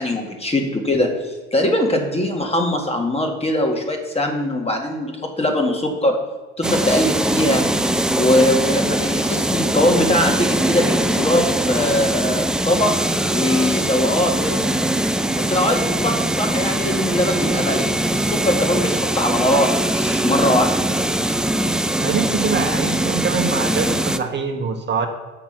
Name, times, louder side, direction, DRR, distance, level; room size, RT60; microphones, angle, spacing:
voice 1, 0.0-6.2 6.6-7.6 8.1-12.9 13.3-14.6 15.4-20.8, left 1 dB, 20° left, 3 dB, 1.8 m, -21 dB
sound 1, 6.6-24.2, right 1 dB, ahead, 0.4 m, -21 dB
voice 2, 22.0-25.1, right 5 dB, 30° right, 3 dB, 1.2 m, -23 dB
7.2 x 5.9 x 5.9 m, 1.3 s
hypercardioid pair, 70°, 34 cm